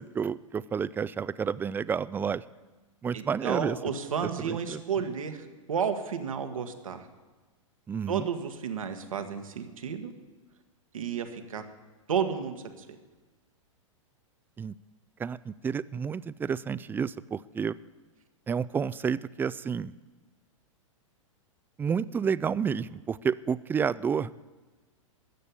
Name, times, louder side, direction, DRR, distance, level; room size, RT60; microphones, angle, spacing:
voice 1, 0.0-2.4 3.0-3.8 4.4-4.8 7.9-8.3 14.6-14.7 15.2-17.8 18.5-19.9 21.8-24.3, right 6 dB, 10° right, 18 dB, 0.3 m, -30 dB
voice 2, 3.1-7.1 8.1-10.1 10.9-11.6 12.1-12.8, right 7 dB, 85° right, 6 dB, 1.6 m, -32 dB
14.0 x 6.8 x 10.0 m, 1.3 s
hypercardioid pair, 110°, 17 cm